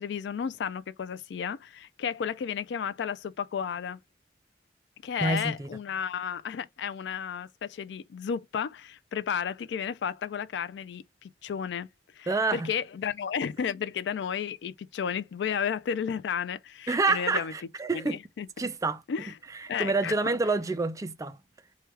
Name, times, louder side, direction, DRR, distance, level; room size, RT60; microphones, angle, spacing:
voice 1, 0.0-4.0 5.0-11.9 12.2-17.5 17.9-18.5 19.1-19.3 19.7-20.3, left 7 dB, 75° left, 0.3 m, -33 dB
voice 2, 5.2-5.7 12.3-12.7 16.9-18.2 18.6-19.0 19.6-21.4, right 3 dB, 20° right, 0.3 m, -28 dB
4.5 x 2.3 x 3.3 m
head